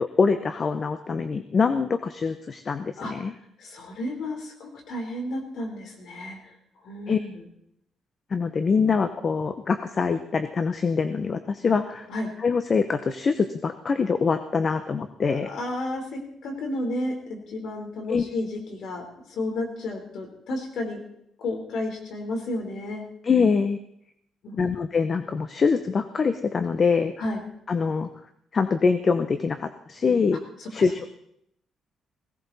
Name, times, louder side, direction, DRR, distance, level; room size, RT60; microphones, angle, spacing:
voice 1, 0.2-3.3 7.1-7.2 8.3-12.1 12.4-15.5 18.1-18.2 23.2-23.8 24.6-27.1 27.7-28.1 28.5-30.4 30.7-31.1, left 5 dB, 40° left, 10 dB, 0.9 m, -24 dB
voice 2, 3.6-6.4 6.8-7.5 12.1-12.3 15.3-21.0 21.4-23.0 24.4-24.8 27.2-27.4 30.6-30.8, left 1 dB, 70° left, 3 dB, 4.0 m, -32 dB
17.0 x 17.0 x 4.2 m, 0.74 s
cardioid pair, 90°, 0 cm